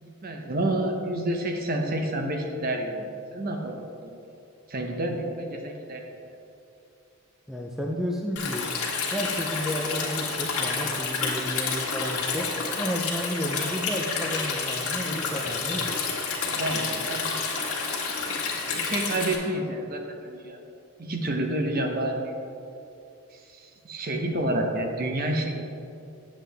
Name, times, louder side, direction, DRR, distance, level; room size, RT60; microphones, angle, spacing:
voice 1, 0.0-4.2 4.7-6.0 16.4-17.4 18.7-20.6 21.0-22.3 23.3-25.7, right 1 dB, 40° right, 3 dB, 0.8 m, -29 dB
voice 2, 7.5-8.6 9.1-12.5 12.8-15.9, equal, ahead, -1 dB, 0.4 m, -32 dB
Stream, 8.4-19.4, left 4 dB, 80° left, 1.5 m, -29 dB
9.2 x 7.4 x 3.4 m, 2.7 s
head